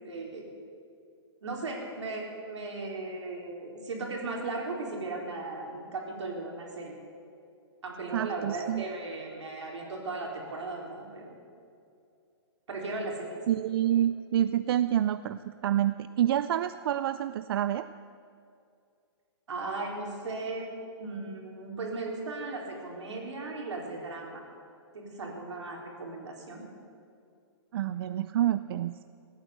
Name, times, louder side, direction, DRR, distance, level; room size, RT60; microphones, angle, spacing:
voice 1, 0.0-0.5 1.4-7.0 7.8-11.4 12.7-13.4 19.5-20.7 21.0-24.4 24.9-26.7, right 3 dB, 85° right, -1 dB, 3.9 m, -37 dB
voice 2, 8.1-8.8 13.5-17.9 27.7-29.0, right 11 dB, 55° right, 13 dB, 0.4 m, -28 dB
16.5 x 9.0 x 8.0 m, 2.4 s
hypercardioid pair, 140°, 14 cm